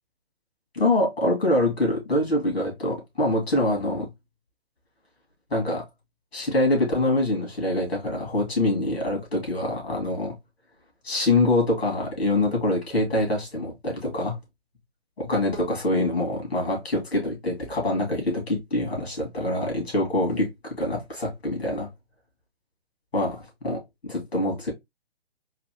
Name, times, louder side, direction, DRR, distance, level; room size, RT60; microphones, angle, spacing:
voice 1, 0.7-4.1 5.5-5.8 6.3-10.3 11.0-14.4 15.2-21.9 23.1-24.7, left 1 dB, 75° left, 2.4 m, -25 dB
4.1 x 2.8 x 2.8 m
figure-of-eight pair, 135°, 32 cm